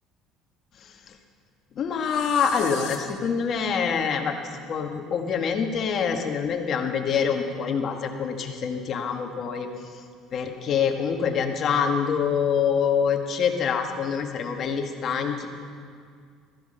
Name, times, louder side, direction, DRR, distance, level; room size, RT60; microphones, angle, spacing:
voice 1, 1.8-4.3 4.7-9.7 10.3-15.5, left 6 dB, 50° left, 3 dB, 1.8 m, -25 dB
sound 1, 2.0-3.0, left 10 dB, 75° left, 1.7 m, -39 dB
15.5 x 14.0 x 5.7 m, 2.1 s
supercardioid pair, 105°, 0 cm